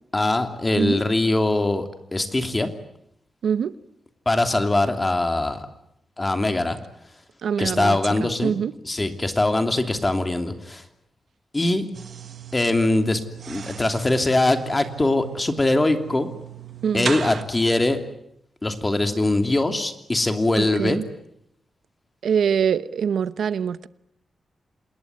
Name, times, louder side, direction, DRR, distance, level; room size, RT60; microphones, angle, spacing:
voice 1, 0.1-2.7 4.3-5.7 6.2-6.8 7.6-10.8 11.5-11.9 12.5-13.2 13.5-16.3 16.9-18.0 18.6-21.0, left 2 dB, 20° left, 2.9 m, -22 dB
voice 2, 3.4-3.7 7.4-8.7 16.8-17.2 20.5-21.0 22.2-23.9, right 7 dB, 85° right, 1.0 m, -24 dB
sound 1, 11.9-17.4, right 7 dB, 60° right, 1.3 m, -36 dB
27.5 x 20.5 x 9.7 m
wide cardioid pair, 105°, 0 cm